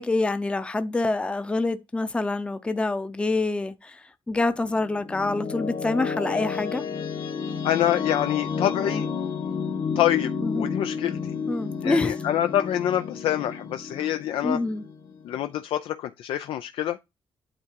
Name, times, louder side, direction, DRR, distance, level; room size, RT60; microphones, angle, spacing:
voice 1, 0.0-6.8 10.4-10.7 11.5-12.1 14.4-14.8, left 2 dB, 10° left, 0.6 m, -26 dB
sound 1, 4.6-15.6, left 6 dB, 60° left, 1.9 m, -31 dB
voice 2, 7.6-9.1 10.0-11.4 11.8-14.6 15.2-17.0, left 11 dB, 90° left, 0.5 m, -26 dB
8.9 x 3.7 x 4.5 m
cardioid pair, 135°, 9 cm